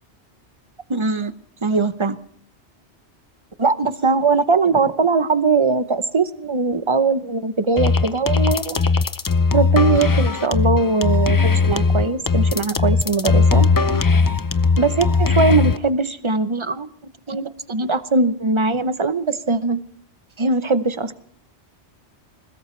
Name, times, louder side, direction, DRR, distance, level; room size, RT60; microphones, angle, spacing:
voice 1, 0.9-1.3 1.6-2.2 3.6-8.8 9.5-13.7 14.8-16.9 17.3-19.8 20.4-21.1, right 4 dB, 30° right, 12 dB, 0.8 m, -20 dB
sound 1, 7.8-15.8, left 4 dB, 25° left, 0.5 m, -18 dB
21.5 x 20.5 x 3.2 m, 0.63 s
omnidirectional pair, 1.2 m